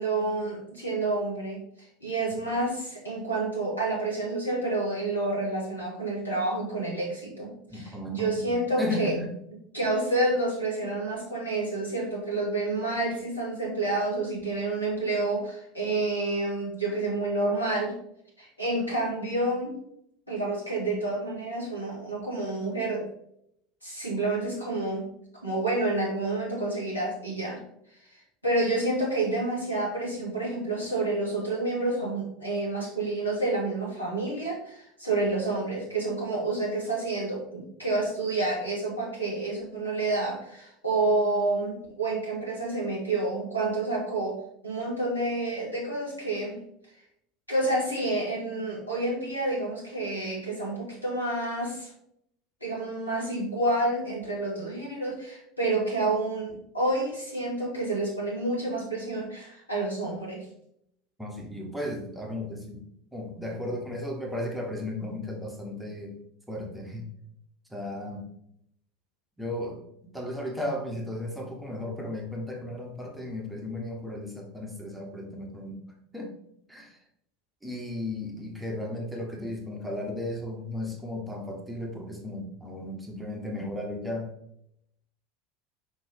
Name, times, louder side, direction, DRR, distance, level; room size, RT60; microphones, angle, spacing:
voice 1, 0.0-9.1 9.7-18.0 18.4-19.8 20.3-23.1 23.8-25.1 25.4-27.6 28.4-44.4 44.6-46.6 47.5-51.9 52.6-60.4, right 2 dB, 90° left, -4 dB, 2.2 m, -29 dB
voice 2, 7.7-9.3 61.2-66.2 66.5-67.1 67.7-68.3 69.4-69.8 70.1-75.8 76.1-76.3 76.7-77.0 77.6-84.3, left 1 dB, 5° right, 0 dB, 1.5 m, -35 dB
6.0 x 5.2 x 3.5 m, 0.73 s
figure-of-eight pair, 75°, 0 cm